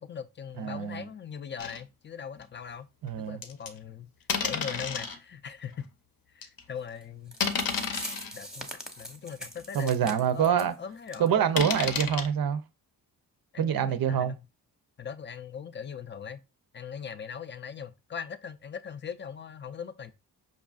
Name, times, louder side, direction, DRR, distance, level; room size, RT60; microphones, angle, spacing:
voice 1, 0.0-2.9 3.2-4.1 4.4-5.9 6.3-7.4 8.3-11.5 13.5-14.5 15.0-16.4 16.7-20.1, left 7 dB, 30° left, 0.4 m, -40 dB
voice 2, 0.6-1.0 3.0-3.4 9.7-10.7 11.2-12.6 13.6-14.3, right 8 dB, 55° right, 0.5 m, -26 dB
sound 1, 1.6-1.8 2.4-2.5 3.4-3.7 4.3-5.2 5.8-5.9 6.4-6.6 7.4-8.3 9.0-9.1 9.6-9.7 9.9-10.0 11.6-12.3, left 6 dB, 55° left, 0.7 m, -31 dB
sound 2, 7.0-7.1 7.3-10.7 11.1-11.3 11.6-11.7 12.2-12.3, right 1 dB, ahead, 0.8 m, -42 dB
5.2 x 2.5 x 2.3 m
cardioid pair, 70°, 42 cm